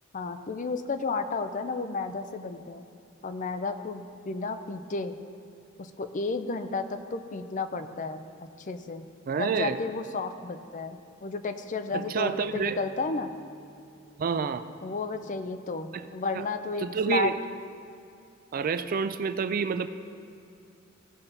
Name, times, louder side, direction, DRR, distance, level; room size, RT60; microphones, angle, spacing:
voice 1, 0.1-2.9 3.2-5.2 5.8-9.0 9.4-13.3 14.8-17.3, left 3 dB, 40° left, 9 dB, 0.5 m, -32 dB
voice 2, 9.3-9.8 11.9-12.8 14.2-14.6 15.9-16.0 16.3-16.4 16.8-17.4 18.5-19.9, right 6 dB, 45° right, 12 dB, 0.4 m, -28 dB
sound 1, 11.9-15.8, right 1 dB, 65° right, 1.8 m, -54 dB
16.0 x 5.7 x 3.9 m, 2.5 s
head